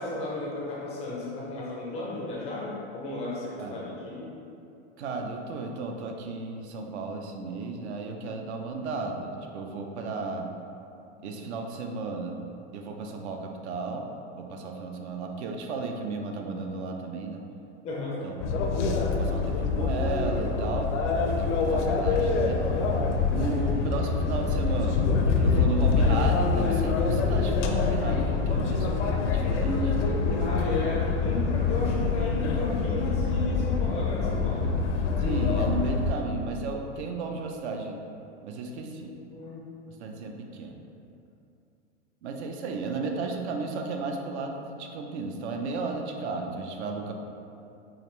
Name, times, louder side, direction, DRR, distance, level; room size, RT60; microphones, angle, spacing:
voice 1, 0.0-4.3 17.8-18.2 30.0-34.7 38.8-39.0 39.3-39.7, left 2 dB, 20° left, -5 dB, 0.3 m, -33 dB
voice 2, 5.0-10.5 11.2-12.4 12.7-14.1 14.4-17.4 18.2-20.9 21.2-22.6 23.3-25.1 25.4-30.0 35.2-38.0 38.4-39.1 40.0-40.7 42.2-47.1, right 3 dB, 70° right, 3 dB, 0.6 m, -34 dB
sound 1, 18.4-36.1, left 4 dB, 85° left, 0.6 m, -25 dB
4.9 x 2.5 x 3.1 m, 2.7 s
supercardioid pair, 145°, 35 cm